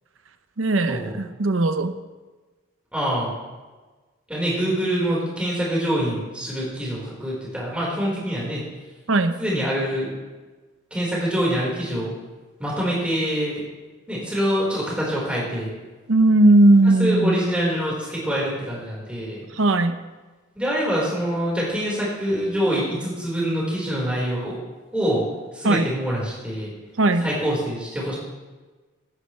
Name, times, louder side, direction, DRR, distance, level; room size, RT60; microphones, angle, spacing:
voice 1, 0.6-2.0 9.1-9.4 16.1-17.4 19.5-20.0 25.6-25.9 27.0-27.3, right 2 dB, 85° right, 10 dB, 0.8 m, -18 dB
voice 2, 2.9-3.3 4.3-8.6 9.4-10.2 10.9-12.1 12.6-13.6 14.1-15.7 17.0-19.5 20.6-24.6 24.9-25.2 25.5-26.7 27.2-28.2, equal, 5° right, -5 dB, 4.6 m, -25 dB
17.0 x 12.5 x 3.3 m, 1.3 s
head